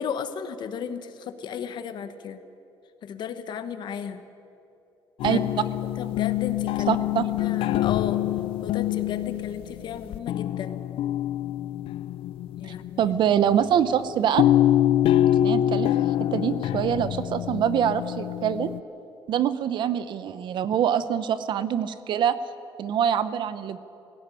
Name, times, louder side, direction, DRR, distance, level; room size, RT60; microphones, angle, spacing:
voice 1, 0.0-2.4 3.0-4.2 5.3-5.5 5.8-7.0 7.4-8.2 8.6-10.8 12.6-13.1, left 7 dB, 55° left, 11 dB, 1.1 m, -34 dB
sound 1, 5.2-13.5 14.4-18.8, left 12 dB, 80° left, 0.5 m, -25 dB
voice 2, 6.9-7.3 12.6-14.4 15.4-18.7 19.3-22.4 22.8-23.8, right 9 dB, 60° right, 14 dB, 0.8 m, -25 dB
17.5 x 16.5 x 9.8 m, 2.8 s
cardioid pair, 170°, 9 cm